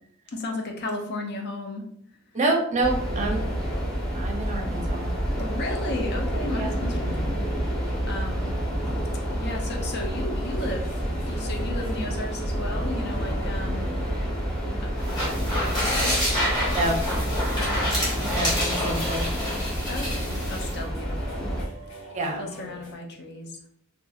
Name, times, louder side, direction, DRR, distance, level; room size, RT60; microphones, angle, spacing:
voice 1, 0.3-1.8 5.4-7.3 8.1-8.6 9.4-13.9 14.8-16.2 17.5-18.3 19.9-21.4 21.9-22.0 22.4-23.6, left 2 dB, 50° left, 2 dB, 0.5 m, -35 dB
voice 2, 2.3-3.5 4.1-5.1 6.5-6.7 16.7-17.0 18.3-19.3 22.1-22.5, right 2 dB, 35° right, 1 dB, 0.6 m, -27 dB
sound 1, 2.8-21.6, equal, 5° left, 0.8 m, -29 dB
sound 2, 10.4-22.9, left 1 dB, 75° left, 1.2 m, -45 dB
sound 3, 15.0-20.8, left 1 dB, 20° left, 1.3 m, -28 dB
2.8 x 2.4 x 2.4 m, 0.67 s
head